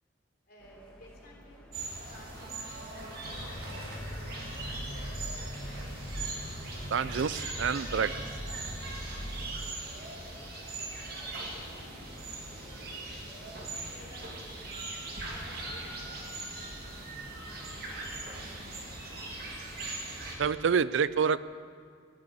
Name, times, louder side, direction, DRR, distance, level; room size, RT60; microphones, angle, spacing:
voice 1, 0.5-1.7 2.1-5.6 8.5-8.7 9.0-9.4 10.9-16.4 16.8-19.4, left 1 dB, 50° left, -3 dB, 3.9 m, -57 dB
sound 1, 0.6-20.5, equal, 5° left, 1.9 m, -54 dB
sound 2, 1.7-20.3, right 2 dB, 50° right, 2.5 m, -41 dB
sound 3, 3.2-9.5, equal, 85° left, 1.9 m, -40 dB
voice 2, 6.9-8.2 20.4-21.4, right 6 dB, 70° right, 16 dB, 0.4 m, -27 dB
14.5 x 10.5 x 8.5 m, 2.1 s
head